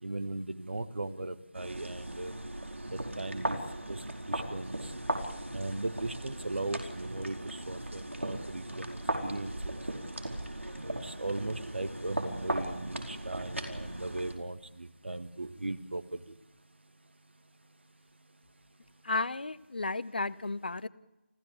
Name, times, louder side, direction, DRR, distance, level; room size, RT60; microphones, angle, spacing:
voice 1, 0.0-2.3 2.9-3.6 3.9-4.9 5.5-9.8 10.7-16.2, right 2 dB, 60° right, 10 dB, 1.8 m, -38 dB
sound 1, 1.5-14.4, right 1 dB, 85° right, 4.7 m, -38 dB
voice 2, 19.0-20.9, left 3 dB, 50° left, 17 dB, 0.9 m, -33 dB
29.0 x 16.0 x 8.5 m, 1.1 s
figure-of-eight pair, 165°, 7 cm